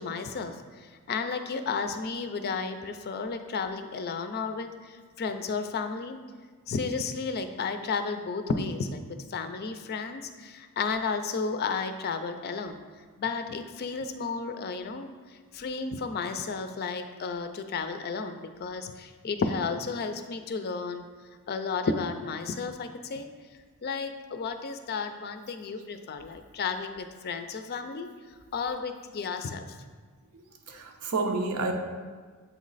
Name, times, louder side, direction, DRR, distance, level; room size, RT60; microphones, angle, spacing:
voice 1, 0.0-6.2 6.7-9.0 9.3-12.8 13.2-15.1 15.5-21.0 21.5-23.3 23.8-28.1 28.5-29.8, left 4 dB, 45° left, 8 dB, 0.4 m, -33 dB
voice 2, 30.7-31.7, right 3 dB, 85° right, 3 dB, 0.7 m, -29 dB
7.9 x 3.1 x 4.0 m, 1.5 s
head